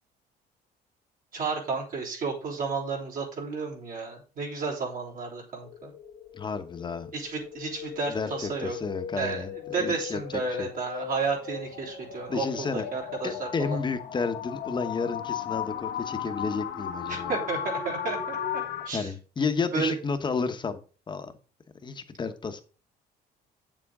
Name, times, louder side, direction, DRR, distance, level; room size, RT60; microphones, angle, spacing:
voice 1, 1.3-5.9 7.1-8.8 9.1-13.8 17.1-19.1 19.7-20.0, right 4 dB, 55° right, 3.5 m, -32 dB
sound 1, 5.6-18.9, left 9 dB, 75° left, 1.2 m, -36 dB
voice 2, 6.3-7.1 8.1-9.5 9.8-10.7 12.3-12.8 13.2-17.3 18.9-20.8 21.1-21.3 21.8-22.6, left 4 dB, 25° left, 1.1 m, -31 dB
7.8 x 7.2 x 3.7 m
cardioid pair, 110°, 17 cm